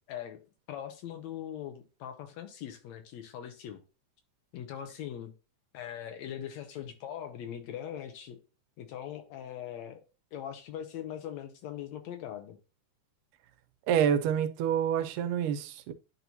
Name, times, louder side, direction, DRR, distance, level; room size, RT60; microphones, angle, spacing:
voice 1, 0.1-0.4 0.7-3.8 4.5-5.3 5.7-8.4 8.8-10.0 10.3-12.6, left 10 dB, 75° left, 1.8 m, -41 dB
voice 2, 13.9-15.9, right 9 dB, 90° right, 2.2 m, -27 dB
10.5 x 4.3 x 2.7 m
omnidirectional pair, 3.6 m